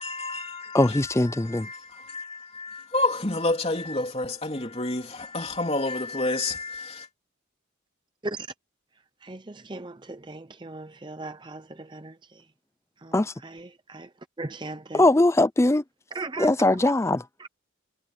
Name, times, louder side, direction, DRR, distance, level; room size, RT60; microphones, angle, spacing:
voice 1, 0.0-7.1, left 2 dB, 30° left, 3.1 m, -30 dB
voice 2, 0.7-1.7 13.1-13.3 14.9-15.8 16.4-17.2, left 2 dB, 15° left, 0.4 m, -21 dB
voice 3, 9.2-12.4 13.0-14.1 14.4-15.0 16.1-16.5 16.8-16.9 17.4-17.5, right 2 dB, 25° right, 0.7 m, -38 dB
head